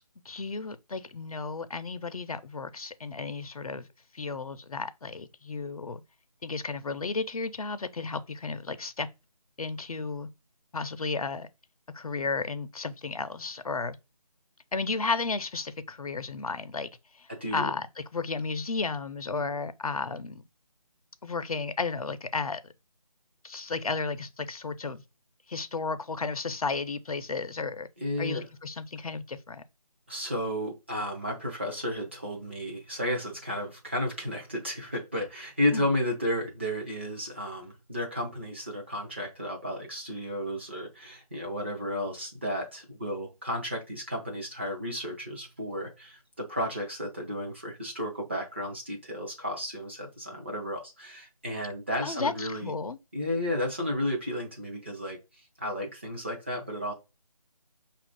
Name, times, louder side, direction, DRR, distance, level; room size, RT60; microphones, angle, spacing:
voice 1, 0.2-3.9 4.1-6.0 6.4-9.1 9.6-10.3 10.7-11.5 11.9-14.0 14.7-16.9 17.1-20.4 21.2-22.6 23.4-25.0 25.5-27.9 28.2-29.6 35.7-35.9 52.0-53.0, left 4 dB, 65° left, 0.5 m, -33 dB
voice 2, 28.0-28.4 30.1-52.7 53.1-55.2 55.6-56.9, left 1 dB, 20° right, 0.6 m, -33 dB
5.6 x 2.5 x 3.5 m
figure-of-eight pair, 165°, 20 cm